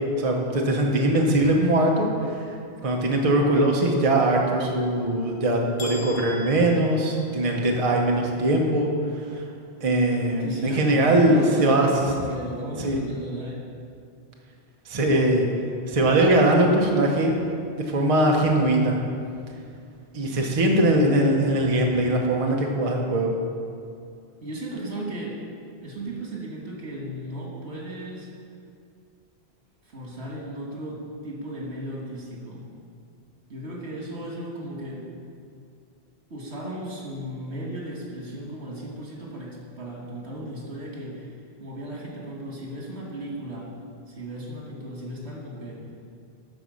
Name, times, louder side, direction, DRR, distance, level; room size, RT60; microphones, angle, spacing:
voice 1, 0.2-2.6 2.8-9.4 9.8-11.9 12.8-13.0 14.9-15.4 15.9-17.3 17.9-19.0 20.1-23.3, right 1 dB, 35° right, 0 dB, 0.9 m, -21 dB
sound 1, 5.8-7.8, left 3 dB, 80° left, 1.3 m, -41 dB
voice 2, 10.4-13.6 24.4-25.4 25.8-28.3 29.8-32.7 33.5-35.1 36.3-41.3 41.6-43.7 44.1-45.8, right 1 dB, 80° right, -2 dB, 1.8 m, -35 dB
10.5 x 4.1 x 6.3 m, 2.3 s
omnidirectional pair, 1.1 m